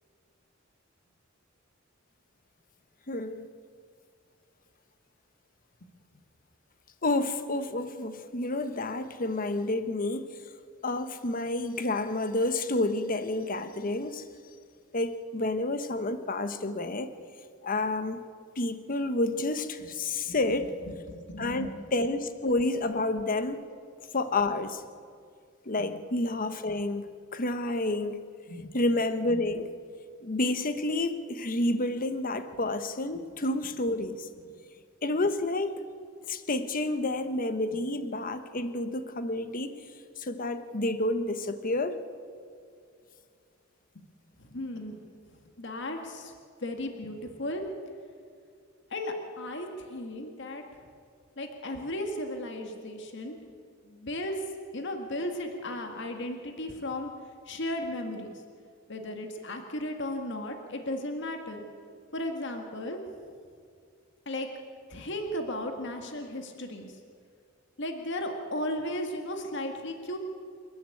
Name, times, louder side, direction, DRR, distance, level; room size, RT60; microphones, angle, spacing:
voice 1, 3.1-3.5 7.0-10.3 10.8-14.2 14.9-17.1 17.6-18.3 18.6-20.7 21.4-23.6 24.1-24.8 25.7-28.2 28.7-29.8 30.2-34.3 35.0-35.8 36.3-39.8 40.2-42.0, left 2 dB, 45° left, 10 dB, 1.2 m, -29 dB
voice 2, 20.9-21.7 22.5-22.7 22.9-23.0 25.8-26.0 28.5-28.7 37.7-37.8 44.0-44.1 44.4-45.2 45.6-46.3 46.6-47.6 48.9-50.6 51.4-53.4 53.8-54.4 54.7-57.1 57.5-58.4 58.9-61.6 62.1-63.0 64.3-64.5 64.9-67.0 67.8-70.2, left 1 dB, 65° left, 4 dB, 1.9 m, -35 dB
27.5 x 11.0 x 8.5 m, 2.2 s
head